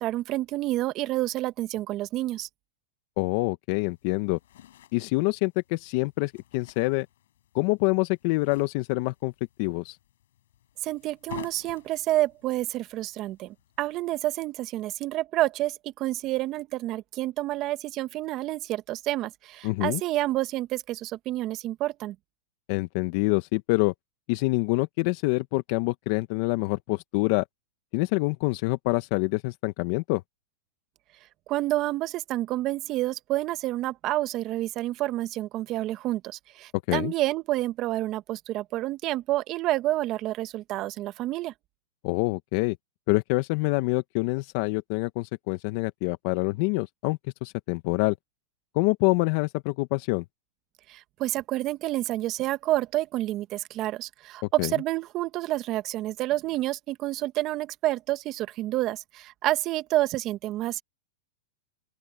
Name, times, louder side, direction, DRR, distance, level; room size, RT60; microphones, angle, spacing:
voice 1, 0.0-2.5 10.8-22.1 31.5-41.5 50.9-60.8, right 16 dB, 40° right, 1.2 m, -29 dB
voice 2, 3.2-4.4 4.9-7.1 7.5-9.3 9.6-10.0 19.6-20.0 22.7-23.9 24.3-27.4 27.9-30.2 36.9-37.1 42.0-42.8 43.1-48.1 48.7-50.2 54.6-54.7, left 24 dB, 55° left, 0.9 m, -26 dB
sound 1, 3.8-14.2, left 12 dB, 75° left, 7.4 m, -51 dB
open air
hypercardioid pair, 125°, 0 cm